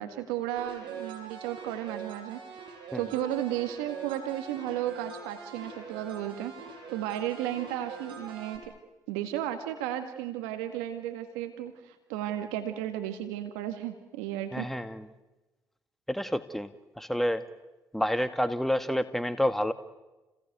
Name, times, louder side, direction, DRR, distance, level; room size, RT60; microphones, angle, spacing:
voice 1, 0.0-2.6 2.9-6.5 6.9-8.7 9.1-14.7, right 12 dB, 85° right, 7 dB, 1.8 m, -34 dB
sound 1, 0.6-8.6, right 5 dB, 65° right, 7.6 m, -43 dB
voice 2, 14.5-15.1 16.1-16.7 17.0-17.4 17.9-19.7, equal, 5° left, 11 dB, 1.6 m, -28 dB
30.0 x 20.5 x 9.3 m, 1.1 s
hypercardioid pair, 50°, 9 cm